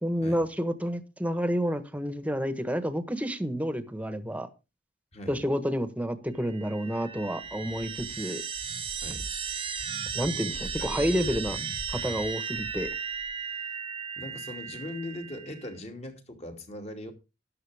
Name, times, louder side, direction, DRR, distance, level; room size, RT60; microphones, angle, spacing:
voice 1, 0.0-4.5 5.3-8.4 10.1-11.6 11.9-12.9, equal, 10° right, 1.3 m, -29 dB
voice 2, 5.1-5.4 9.0-9.2 10.8-11.1 14.2-17.1, left 1 dB, 35° left, 2.5 m, -40 dB
sound 1, 6.4-15.7, right 6 dB, 30° right, 1.0 m, -35 dB
13.5 x 10.5 x 3.5 m
head